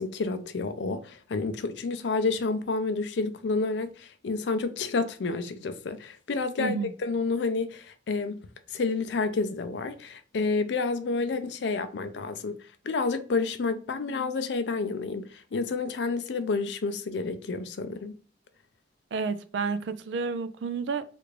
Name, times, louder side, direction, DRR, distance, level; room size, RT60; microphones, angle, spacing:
voice 1, 0.0-8.4 8.7-12.6 12.8-18.2, left 4 dB, 75° left, 0.4 m, -29 dB
voice 2, 6.6-6.9 19.1-21.0, right 4 dB, 75° right, 0.4 m, -30 dB
3.4 x 2.4 x 3.2 m
head